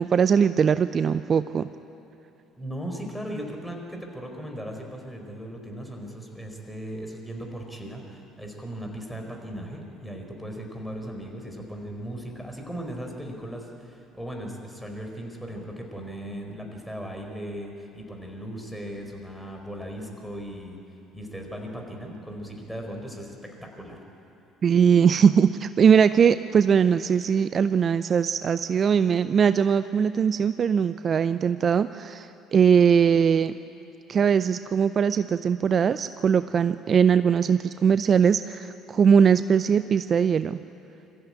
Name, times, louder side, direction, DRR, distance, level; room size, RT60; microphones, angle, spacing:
voice 1, 0.0-1.7 24.6-33.5 34.1-40.6, right 7 dB, 45° right, 13 dB, 0.5 m, -21 dB
voice 2, 2.6-20.8 21.1-24.0, equal, 5° left, 2 dB, 4.6 m, -37 dB
24.0 x 15.0 x 8.9 m, 3.0 s
hypercardioid pair, 60°, 0 cm